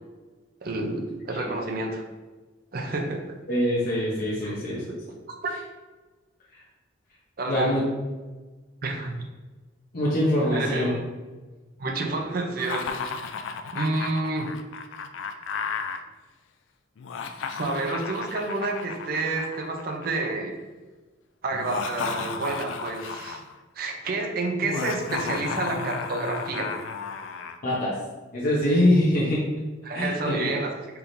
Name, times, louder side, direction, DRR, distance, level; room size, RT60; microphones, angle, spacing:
voice 1, 0.6-2.0 2.7-3.2 4.4-5.0 7.4-7.8 8.8-9.2 10.4-11.0 11.8-13.0 13.7-14.5 17.5-20.6 21.4-23.4 23.8-26.7 29.8-30.7, right 2 dB, 50° right, 2 dB, 0.6 m, -29 dB
voice 2, 3.5-4.9 7.5-7.8 9.9-10.9 27.6-27.9 28.3-29.4 29.9-30.5, left 1 dB, 50° left, -7 dB, 0.8 m, -23 dB
Laughter, 12.6-16.0 17.0-20.3 21.5-23.5 24.6-27.6, left 5 dB, 80° left, 0.3 m, -33 dB
4.6 x 3.4 x 2.6 m, 1.2 s
head